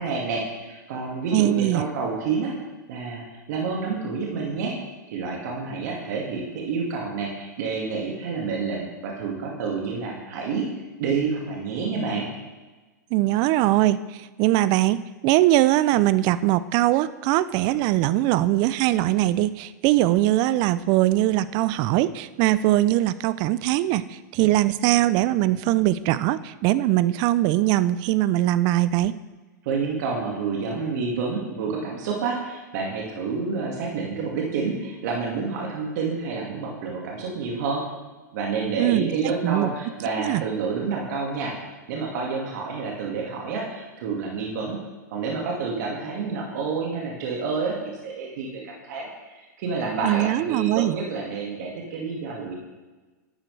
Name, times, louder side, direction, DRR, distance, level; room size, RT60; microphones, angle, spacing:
voice 1, 0.0-2.5 2.9-4.7 5.1-10.7 11.0-12.3 29.6-37.8 38.3-41.5 41.9-44.8 45.1-52.6, right 4 dB, 60° right, -1 dB, 2.0 m, -29 dB
voice 2, 1.3-1.8 13.1-14.0 14.4-24.0 24.3-29.2 38.8-39.1 39.4-39.7 40.2-40.4 50.0-51.0, right 15 dB, 45° right, 16 dB, 0.4 m, -21 dB
11.0 x 8.9 x 3.3 m, 1.2 s
hypercardioid pair, 115°, 10 cm